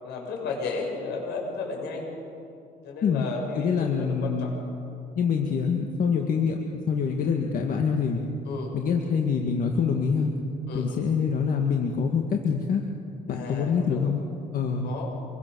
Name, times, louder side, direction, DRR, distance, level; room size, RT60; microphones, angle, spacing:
voice 1, 0.0-2.1 2.8-4.5 8.5-8.7 10.7-11.0 13.3-14.1 14.8-15.1, left 4 dB, 80° left, 1 dB, 6.9 m, -33 dB
voice 2, 3.5-4.7 5.1-8.2 8.7-10.3 10.7-12.8 13.3-14.2 14.5-14.9, left 6 dB, 55° left, 2 dB, 2.0 m, -25 dB
27.0 x 22.5 x 7.1 m, 2.7 s
cardioid pair, 110°, 17 cm